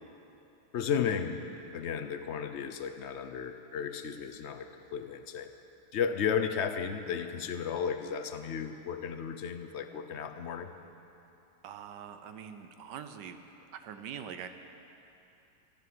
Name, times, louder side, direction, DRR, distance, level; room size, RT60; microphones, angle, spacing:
voice 1, 0.7-1.4 1.7-5.5 5.9-10.7, left 7 dB, 55° left, 8 dB, 0.8 m, -34 dB
voice 2, 11.6-13.4 13.7-14.5, right 8 dB, 80° right, 8 dB, 1.4 m, -43 dB
14.5 x 10.5 x 7.7 m, 2.8 s
omnidirectional pair, 1.8 m